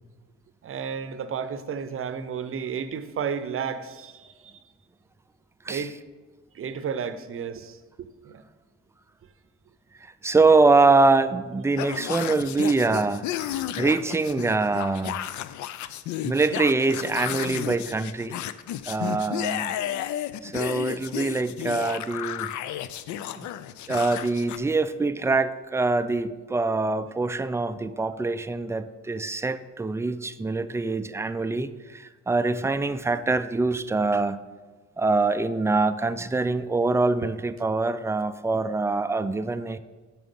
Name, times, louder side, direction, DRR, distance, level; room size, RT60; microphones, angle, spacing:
voice 1, 0.6-4.6 5.7-5.9 6.5-8.4, right 7 dB, 45° right, 0.7 m, -32 dB
voice 2, 10.0-15.2 16.2-18.4 18.9-19.8 20.4-22.5 23.4-23.5 23.9-34.4 35.0-39.8, right 3 dB, 10° right, 0.3 m, -24 dB
sound 1, 11.8-24.6, left 12 dB, 75° left, 0.4 m, -33 dB
7.4 x 5.9 x 5.3 m
cardioid pair, 90°, 30 cm